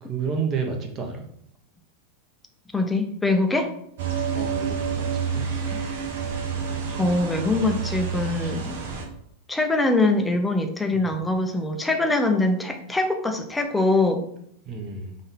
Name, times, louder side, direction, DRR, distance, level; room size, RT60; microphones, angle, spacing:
voice 1, 0.0-1.3 4.3-5.5 10.9-11.1 14.6-15.2, right 5 dB, 30° right, 2 dB, 1.1 m, -30 dB
voice 2, 2.7-3.7 5.7-5.8 7.0-8.8 9.5-14.2, left 2 dB, 5° left, 5 dB, 0.7 m, -23 dB
sound 1, 4.0-9.0, right 6 dB, 55° right, 0.9 m, -29 dB
5.4 x 2.7 x 3.6 m, 0.72 s
figure-of-eight pair, 90°, 0 cm